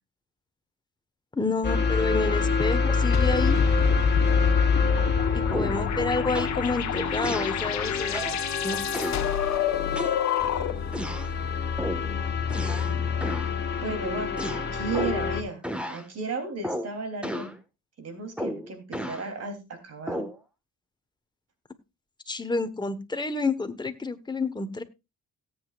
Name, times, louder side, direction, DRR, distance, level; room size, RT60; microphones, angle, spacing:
voice 1, 1.3-3.6 5.3-8.2 8.6-8.9 22.3-24.8, left 3 dB, 15° left, 8 dB, 1.3 m, -29 dB
sound 1, 1.6-15.4, left 4 dB, 35° left, 2.4 m, -27 dB
sound 2, 3.1-10.9, left 9 dB, 65° left, 1.2 m, -29 dB
sound 3, 5.5-5.9 6.3-6.6 7.2-7.6 8.1-8.4 8.9-9.3 10.0-10.5 10.9-11.3 11.8-12.1 12.5-13.0 13.2-13.5 14.4-15.3 15.6-16.0 16.6-16.9 17.2-17.6 18.4-19.3 20.1-20.4, equal, 5° right, 1.6 m, -33 dB
voice 2, 12.6-13.2 13.8-17.5 18.0-20.2, right 4 dB, 55° right, 5 dB, 3.4 m, -35 dB
18.0 x 8.2 x 2.5 m, 0.26 s
cardioid pair, 90°, 30 cm